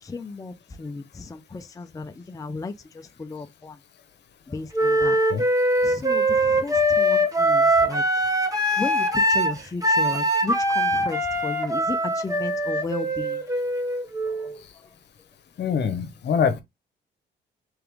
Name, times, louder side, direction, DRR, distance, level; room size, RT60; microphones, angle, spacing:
voice 1, 0.0-3.8 4.5-5.2 5.8-8.2 8.8-13.4 14.3-14.5, left 3 dB, 15° left, 0.5 m, -34 dB
Wind instrument woodwind instrument, 4.7-14.5, right 1 dB, 15° right, 1.1 m, -22 dB
voice 2, 15.6-16.6, left 7 dB, 60° left, 1.0 m, -24 dB
3.5 x 3.4 x 3.4 m
cardioid pair, 90°, 20 cm